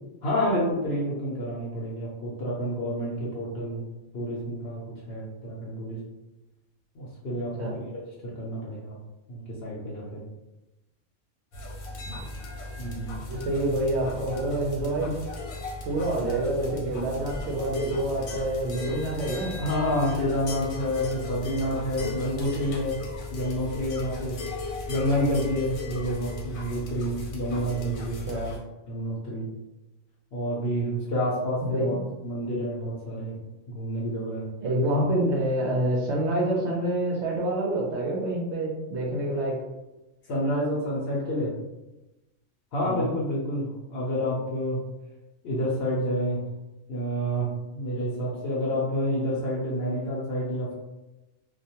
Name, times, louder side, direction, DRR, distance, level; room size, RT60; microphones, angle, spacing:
voice 1, 0.2-3.8 4.1-4.8 5.1-6.0 6.9-7.5 8.2-8.9 9.3-10.2 12.8-13.1 19.6-23.0 23.3-24.4 24.9-28.2 28.9-29.5 30.3-33.4 33.7-34.5 40.3-41.5 42.7-44.8 45.4-46.4 46.9-50.7, equal, 60° left, -5 dB, 0.8 m, -29 dB
sound 1, 11.5-28.6, left 2 dB, 80° left, 1.1 m, -37 dB
voice 2, 13.3-15.1 15.9-19.5 28.3-28.5 31.6-32.0 34.6-39.5 42.8-43.1, right 1 dB, 65° right, -2 dB, 0.8 m, -27 dB
2.3 x 2.1 x 2.8 m, 1.0 s
omnidirectional pair, 1.4 m